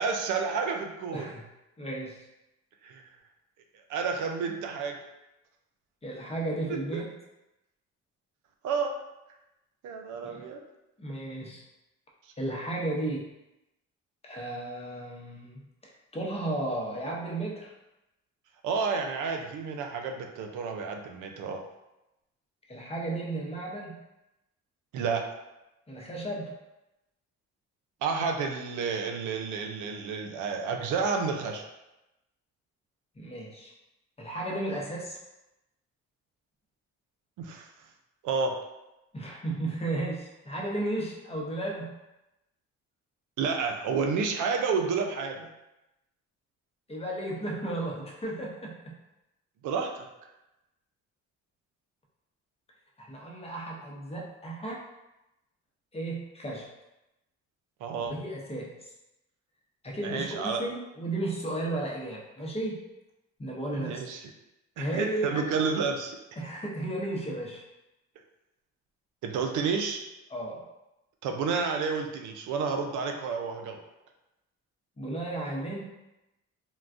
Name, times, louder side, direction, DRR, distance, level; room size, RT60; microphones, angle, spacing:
voice 1, 0.0-1.3 2.8-3.0 3.9-5.0 6.7-7.1 8.6-9.0 9.8-10.6 18.6-21.6 24.9-25.2 28.0-31.7 37.4-37.7 38.2-38.5 43.4-45.5 49.6-50.1 57.8-58.1 60.0-60.6 63.7-64.2 64.8-66.2 69.2-70.0 71.2-73.8, right 5 dB, 80° right, 4 dB, 0.5 m, -30 dB
voice 2, 1.1-1.4 1.8-2.2 6.0-7.1 10.2-10.4 11.0-11.6 12.4-13.3 14.2-15.6 16.1-17.7 22.7-24.0 25.9-26.5 33.2-33.7 34.2-35.2 39.1-42.0 46.9-48.9 53.0-54.9 55.9-56.7 58.0-58.9 59.8-62.8 63.4-64.1 64.8-65.5 66.4-67.6 70.3-70.6 75.0-75.8, right 1 dB, 20° left, -2 dB, 0.7 m, -34 dB
3.7 x 2.3 x 2.5 m, 0.94 s
cardioid pair, 90°, 30 cm